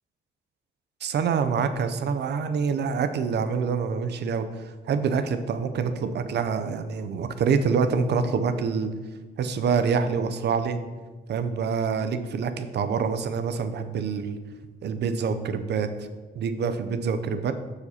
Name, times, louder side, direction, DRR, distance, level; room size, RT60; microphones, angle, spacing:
voice 1, 1.0-8.9 9.4-10.8 11.3-14.4 14.8-16.1 16.3-17.5, right 5 dB, 60° right, 9 dB, 0.6 m, -26 dB
6.4 x 4.9 x 4.2 m, 1.3 s
cardioid pair, 90°, 20 cm